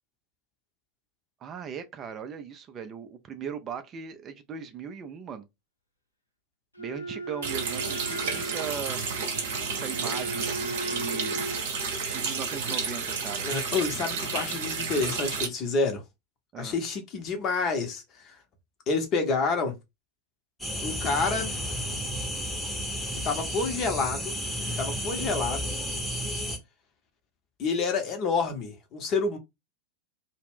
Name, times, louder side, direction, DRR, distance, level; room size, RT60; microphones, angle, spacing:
voice 1, 1.4-5.5 6.8-9.0 9.7-11.4 12.1-13.5 16.5-16.8, right 7 dB, 30° right, 0.4 m, -38 dB
Wind instrument woodwind instrument, 6.7-11.7, right 2 dB, 85° left, 0.6 m, -37 dB
Water tap faucet, 7.4-15.5, right 5 dB, 55° right, 0.7 m, -31 dB
voice 2, 13.4-16.0 16.6-18.4 18.9-19.8 20.8-21.5 23.2-24.3 24.7-25.7 27.6-29.4, left 4 dB, 30° left, 0.8 m, -28 dB
sound 1, 20.6-26.6, equal, ahead, 0.8 m, -32 dB
2.3 x 2.1 x 3.5 m
figure-of-eight pair, 90°, 0 cm